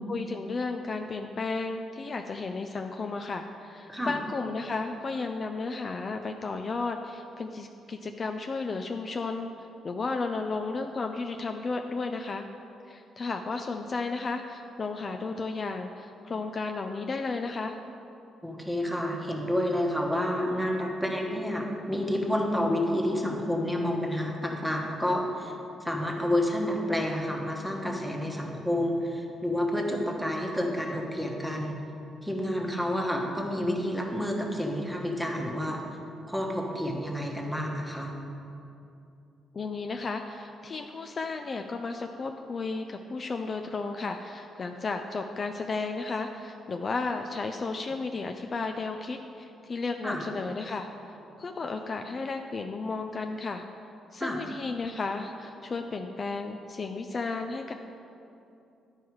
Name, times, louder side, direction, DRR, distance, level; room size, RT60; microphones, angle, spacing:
voice 1, 0.0-12.4 12.9-17.8 39.5-53.6 54.1-57.7, left 3 dB, 40° left, 5 dB, 0.4 m, -33 dB
voice 2, 18.4-25.5 25.8-31.8 32.2-35.8 36.3-38.1 50.0-50.2 54.2-54.4, left 1 dB, ahead, 0 dB, 1.2 m, -29 dB
11.0 x 4.6 x 4.7 m, 2.8 s
cardioid pair, 90°, 0 cm